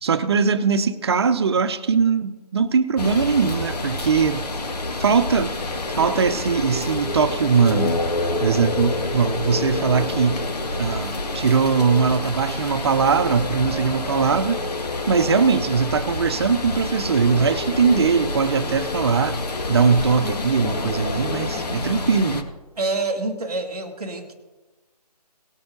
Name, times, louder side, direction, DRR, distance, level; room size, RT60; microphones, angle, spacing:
voice 1, 0.0-4.5 5.0-5.5 6.0-8.0 8.4-10.4 10.8-14.7 15.1-19.4 19.7-22.5, right 5 dB, 40° right, 0.8 m, -20 dB
sound 1, 3.0-22.4, left 2 dB, 75° left, 1.7 m, -28 dB
sound 2, 10.0-10.8 11.1-11.2 11.7-11.8 14.0-14.1 14.7-15.9 16.3-16.4 18.1-18.5 18.9-19.0 19.4-21.8, left 3 dB, 35° left, 1.1 m, -40 dB
voice 2, 22.8-24.3, right 3 dB, ahead, 0.3 m, -27 dB
18.5 x 6.9 x 3.8 m
figure-of-eight pair, 155°, 21 cm